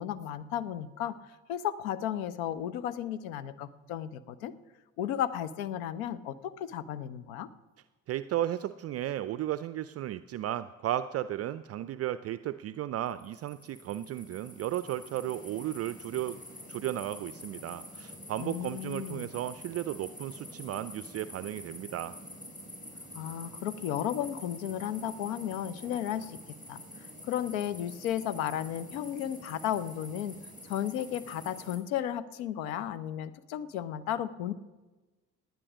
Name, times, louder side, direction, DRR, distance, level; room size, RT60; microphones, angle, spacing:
voice 1, 0.0-4.5 5.0-7.5 18.4-19.3 23.1-26.8 27.2-30.4 30.6-34.5, left 10 dB, 65° left, 17 dB, 0.9 m, -34 dB
voice 2, 8.1-16.4 16.7-22.1, right 13 dB, 35° right, 14 dB, 0.4 m, -34 dB
sound 1, 13.1-31.8, left 1 dB, 20° left, 4.9 m, -47 dB
18.5 x 9.3 x 6.1 m, 1.2 s
figure-of-eight pair, 50°, 44 cm